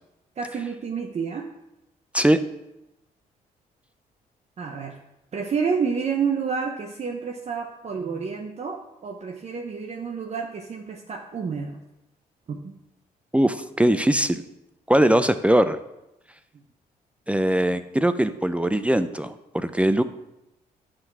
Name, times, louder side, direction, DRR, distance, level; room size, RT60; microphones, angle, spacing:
voice 1, 0.4-1.5 4.6-5.0 5.3-11.8 12.5-12.7, right 6 dB, 45° right, 2 dB, 0.8 m, -29 dB
voice 2, 13.3-14.4 14.9-15.8 17.3-20.0, right 1 dB, 10° right, 11 dB, 0.4 m, -21 dB
9.7 x 3.8 x 6.0 m, 0.90 s
cardioid pair, 85°, 16 cm